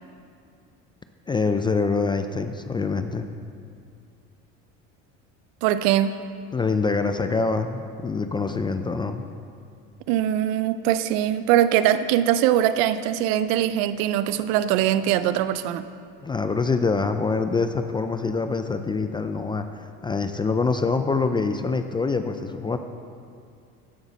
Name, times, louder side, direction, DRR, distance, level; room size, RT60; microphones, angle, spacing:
voice 1, 1.3-3.3 6.5-9.2 16.2-22.8, left 4 dB, 15° left, 8 dB, 0.4 m, -25 dB
voice 2, 5.6-6.2 10.1-15.8, right 11 dB, 80° right, 13 dB, 0.5 m, -22 dB
14.0 x 6.2 x 4.1 m, 2.4 s
supercardioid pair, 110°, 31 cm